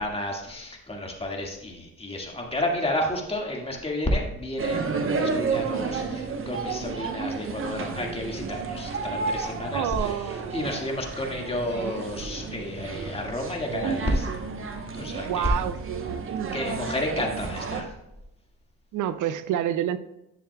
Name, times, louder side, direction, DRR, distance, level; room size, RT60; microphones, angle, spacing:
voice 1, 0.0-10.2 10.5-14.3 15.0-15.5 16.5-17.9, left 1 dB, 20° left, 0 dB, 1.9 m, -31 dB
sound 1, 4.6-17.8, right 4 dB, 45° right, 1.0 m, -31 dB
voice 2, 9.7-10.5 15.2-16.6 18.9-20.0, right 10 dB, 80° right, 13 dB, 0.5 m, -28 dB
11.0 x 7.0 x 2.3 m, 0.87 s
cardioid pair, 90°, 30 cm